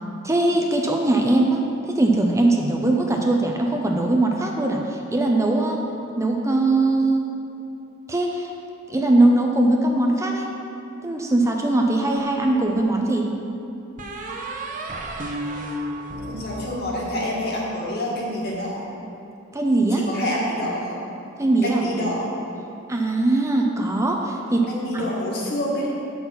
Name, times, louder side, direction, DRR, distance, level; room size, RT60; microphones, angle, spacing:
voice 1, 0.2-1.6 1.9-5.8 6.2-7.2 8.1-8.5 8.9-10.5 11.0-13.3 19.5-20.0 21.4-21.8 22.9-24.6 24.9-25.1, right 2 dB, 15° right, 1 dB, 0.5 m, -20 dB
sound 1, 12.2-13.0 14.0-17.3, right 1 dB, 40° right, 0.8 m, -33 dB
voice 2, 16.3-18.9 19.9-21.0 21.6-22.3 24.7-25.9, left 1 dB, 55° left, -4 dB, 1.8 m, -27 dB
7.7 x 5.5 x 5.8 m, 2.7 s
head